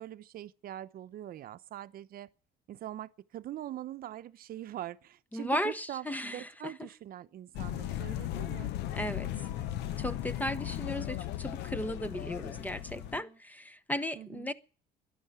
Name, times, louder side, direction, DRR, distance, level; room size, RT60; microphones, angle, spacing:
voice 1, 0.0-2.3 2.7-8.7 14.2-14.5, right 12 dB, 60° right, 0.8 m, -43 dB
voice 2, 5.3-6.9 8.9-9.5 10.0-14.5, equal, 10° left, 0.9 m, -36 dB
sound 1, 7.5-13.2, left 13 dB, 85° left, 0.8 m, -37 dB
Wind instrument woodwind instrument, 9.2-13.4, right 4 dB, 15° right, 1.9 m, -57 dB
12.5 x 11.0 x 9.4 m
cardioid pair, 110°, 17 cm